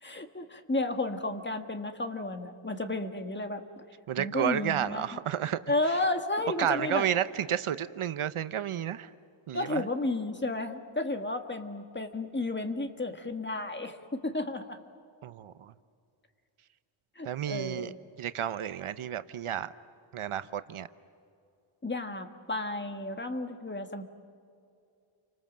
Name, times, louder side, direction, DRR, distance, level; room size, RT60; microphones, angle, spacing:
voice 1, 0.0-3.8 4.2-5.2 5.7-7.1 9.5-14.8 17.2-18.0 21.8-24.0, left 2 dB, 20° left, 7 dB, 1.6 m, -32 dB
voice 2, 4.1-5.6 6.6-9.1 9.5-9.8 15.2-15.7 17.2-17.9 18.2-19.7 20.1-20.9, right 10 dB, 75° right, 13 dB, 0.9 m, -31 dB
30.0 x 25.0 x 7.5 m, 2.5 s
wide cardioid pair, 125°, 50 cm